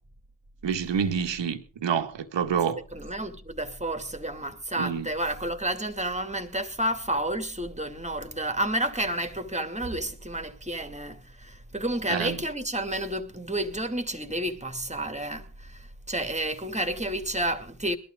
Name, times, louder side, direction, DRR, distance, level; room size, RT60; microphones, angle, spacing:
voice 1, 0.6-2.8 4.8-5.1 12.1-12.4, right 7 dB, 65° right, 1.8 m, -27 dB
voice 2, 2.9-18.0, right 1 dB, 15° right, 2.5 m, -30 dB
21.5 x 12.0 x 3.8 m
hypercardioid pair, 40°, 48 cm